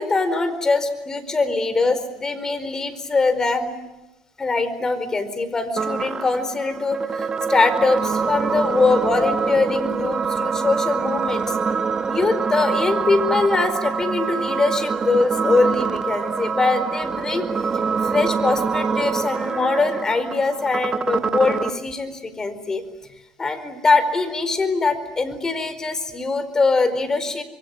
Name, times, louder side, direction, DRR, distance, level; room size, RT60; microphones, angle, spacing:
voice 1, 0.0-3.8 4.4-11.5 12.1-17.5 18.0-22.8 23.4-27.4, left 3 dB, 25° left, 12 dB, 4.6 m, -22 dB
sound 1, 5.8-21.8, right 5 dB, 30° right, 1.8 m, -25 dB
26.5 x 23.5 x 9.5 m, 1.0 s
supercardioid pair, 90°, 2 cm